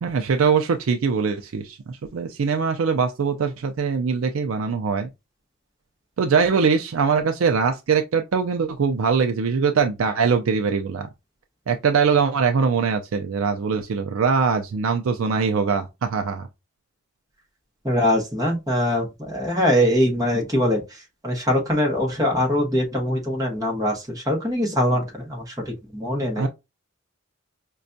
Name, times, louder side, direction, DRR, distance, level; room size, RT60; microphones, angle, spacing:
voice 1, 0.0-5.1 6.2-11.1 11.7-16.5 26.4-26.5, right 5 dB, 85° right, 0.4 m, -22 dB
voice 2, 17.8-20.8 21.2-23.9 24.3-25.4 25.9-26.5, equal, 15° right, 1.0 m, -22 dB
5.0 x 2.3 x 2.6 m
head